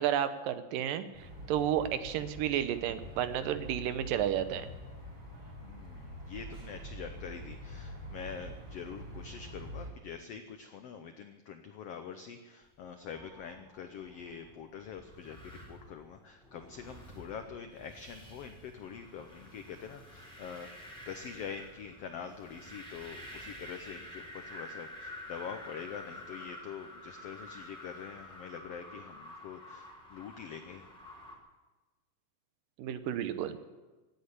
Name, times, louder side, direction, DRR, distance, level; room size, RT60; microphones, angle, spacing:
voice 1, 0.0-4.7 32.8-33.6, right 10 dB, 80° right, 11 dB, 2.5 m, -32 dB
sound 1, 1.1-9.9, equal, 35° right, 5.1 m, -45 dB
voice 2, 5.6-20.7 21.0-30.9, left 7 dB, 90° left, 7 dB, 1.3 m, -45 dB
sound 2, 12.8-31.4, left 1 dB, ahead, 2.8 m, -49 dB
16.5 x 8.8 x 9.7 m, 1.2 s
omnidirectional pair, 4.0 m